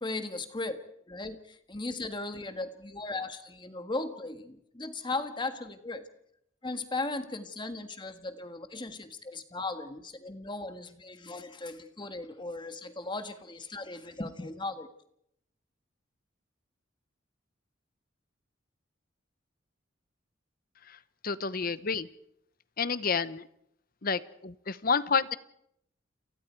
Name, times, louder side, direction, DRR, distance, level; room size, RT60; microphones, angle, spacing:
voice 1, 0.0-0.8 1.1-6.0 6.6-14.9, left 2 dB, 25° left, 8 dB, 1.7 m, -37 dB
voice 2, 21.2-22.1 22.8-23.5 24.0-25.3, left 5 dB, 50° left, 15 dB, 0.9 m, -29 dB
30.0 x 23.5 x 4.6 m, 0.75 s
head